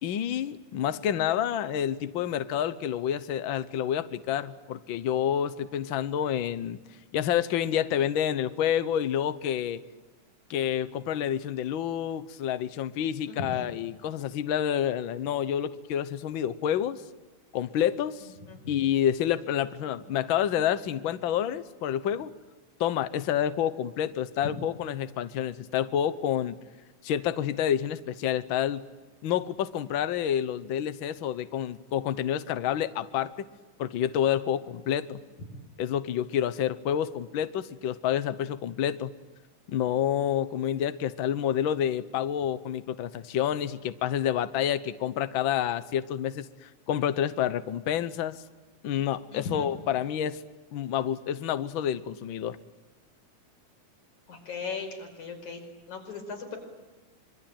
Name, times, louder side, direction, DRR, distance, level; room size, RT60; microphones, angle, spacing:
voice 1, 0.0-6.8 7.1-9.8 10.5-17.0 17.5-18.3 18.7-22.3 22.8-26.6 27.0-28.8 29.2-33.3 33.8-35.2 35.8-39.1 39.7-48.4 48.8-50.4 50.7-52.6, left 10 dB, 80° left, 13 dB, 1.1 m, -28 dB
voice 2, 13.3-13.7 18.2-18.7 24.4-24.5 35.4-35.5 49.3-49.7 54.3-56.6, left 4 dB, 65° left, 5 dB, 6.5 m, -38 dB
26.0 x 24.0 x 9.0 m, 1.3 s
omnidirectional pair, 3.7 m